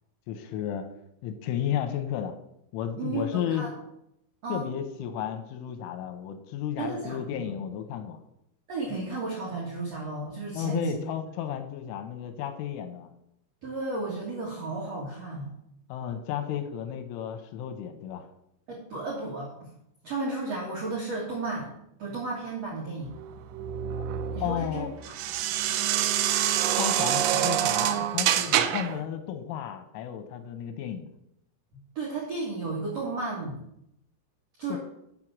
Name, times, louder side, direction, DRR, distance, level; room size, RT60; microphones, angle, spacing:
voice 1, 0.3-0.9 1.2-2.4 2.7-3.7 4.5-8.2 10.5-13.1 15.9-18.3 24.0-24.1 24.4-24.9 26.7-31.1 34.7-34.8, left 9 dB, 85° left, 7 dB, 3.1 m, -33 dB
voice 2, 3.0-3.7 4.4-4.6 6.8-7.5 8.7-11.0 13.6-15.5 18.7-19.7 20.0-21.7 22.0-23.1 24.3-25.1 31.7-33.6 34.6-34.8, right 3 dB, 65° right, -4 dB, 1.7 m, -33 dB
sound 1, 23.1-29.0, right 11 dB, 85° right, 2.5 m, -26 dB
7.9 x 6.1 x 7.4 m, 0.79 s
omnidirectional pair, 5.7 m